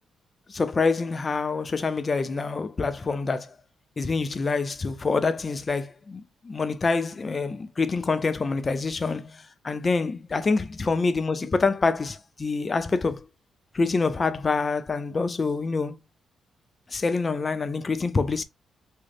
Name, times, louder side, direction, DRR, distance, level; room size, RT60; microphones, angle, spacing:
voice 1, 0.5-3.5 4.0-13.3 13.7-16.0 16.9-18.4, left 4 dB, 30° left, 0.4 m, -26 dB
3.6 x 2.0 x 3.4 m
cardioid pair, 95°, 0 cm